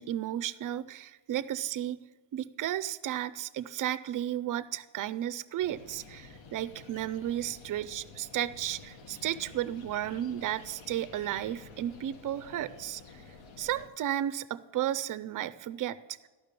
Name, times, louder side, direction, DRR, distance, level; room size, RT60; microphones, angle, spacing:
voice 1, 0.0-2.0 2.3-13.2 13.6-16.0, right 12 dB, 45° right, 15 dB, 0.5 m, -33 dB
sound 1, 5.6-13.9, left 4 dB, 75° left, 1.2 m, -51 dB
13.5 x 5.8 x 6.7 m, 1.3 s
cardioid pair, 160°, 46 cm